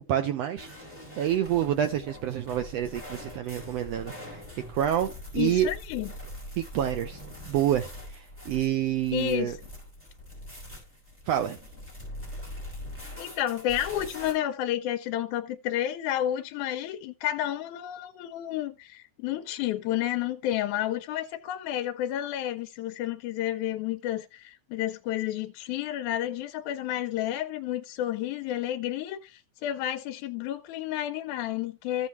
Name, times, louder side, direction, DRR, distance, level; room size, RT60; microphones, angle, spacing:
voice 1, 0.1-0.7 1.2-4.4 4.7-5.7 6.6-9.6 11.3-11.6, right 11 dB, 80° right, 1.5 m, -28 dB
sound 1, 0.6-14.3, left 1 dB, 5° right, 4.6 m, -43 dB
voice 2, 5.4-6.1 9.1-9.6 13.2-32.1, left 12 dB, 80° left, 2.0 m, -31 dB
14.5 x 5.5 x 3.0 m
omnidirectional pair, 3.5 m